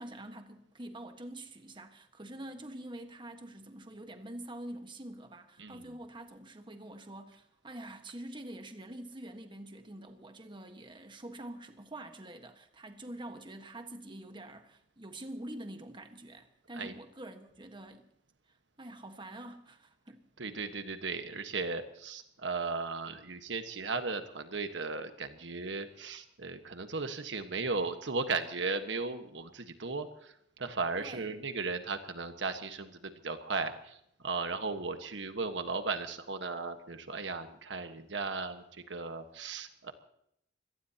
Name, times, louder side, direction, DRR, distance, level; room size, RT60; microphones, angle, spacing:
voice 1, 0.0-18.1 18.5-20.2 31.0-31.3, right 1 dB, 25° right, 1.5 m, -46 dB
voice 2, 20.4-34.0 34.2-39.9, right 4 dB, 80° right, 1.5 m, -36 dB
25.0 x 18.0 x 2.9 m
head